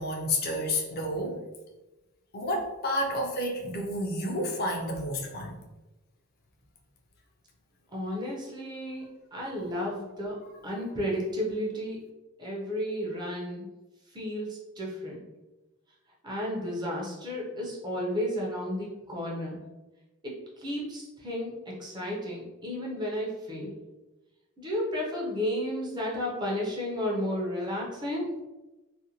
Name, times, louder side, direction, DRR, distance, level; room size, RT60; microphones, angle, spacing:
voice 1, 0.0-1.4 2.3-5.6 9.6-9.7, left 1 dB, 45° left, 1 dB, 0.4 m, -30 dB
voice 2, 7.9-9.0 9.3-10.4 10.6-12.0 12.4-13.7 14.1-15.2 16.2-19.6 20.2-23.8 24.6-28.3, equal, 20° right, -3 dB, 0.5 m, -33 dB
2.5 x 2.1 x 2.7 m, 1.1 s
head